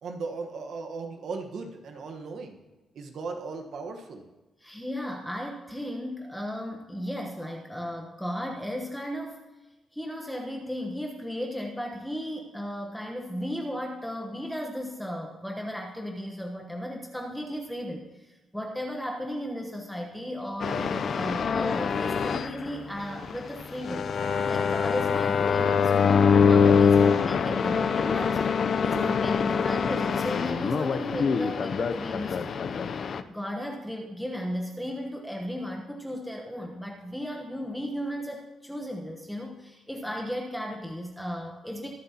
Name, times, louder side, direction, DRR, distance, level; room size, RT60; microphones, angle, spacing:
voice 1, 0.0-2.6 2.9-4.3, right 4 dB, 60° right, 3 dB, 1.2 m, -37 dB
voice 2, 4.6-9.4 9.9-24.2 24.5-32.5 33.3-41.9, equal, ahead, 1 dB, 1.0 m, -35 dB
sound 1, 20.6-33.2, left 6 dB, 45° left, 0.5 m, -24 dB
22.5 x 7.6 x 2.9 m, 1.1 s
wide cardioid pair, 155°, 0 cm